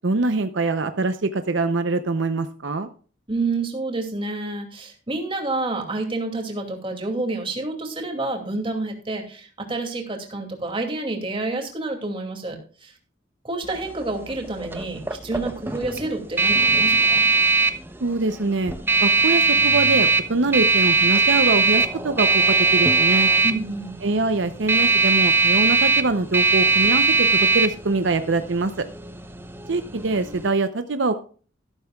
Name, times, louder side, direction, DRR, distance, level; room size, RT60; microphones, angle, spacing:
voice 1, 0.0-2.9 18.0-18.7 19.0-23.3 24.0-28.9 29.7-31.2, right 3 dB, 75° right, 9 dB, 0.7 m, -24 dB
voice 2, 3.3-12.9 13.4-17.2 23.4-24.0, right 2 dB, 30° right, 2 dB, 2.5 m, -29 dB
sound 1, 13.6-30.5, right 4 dB, 10° right, 0.7 m, -21 dB
13.0 x 12.5 x 2.3 m, 0.41 s
head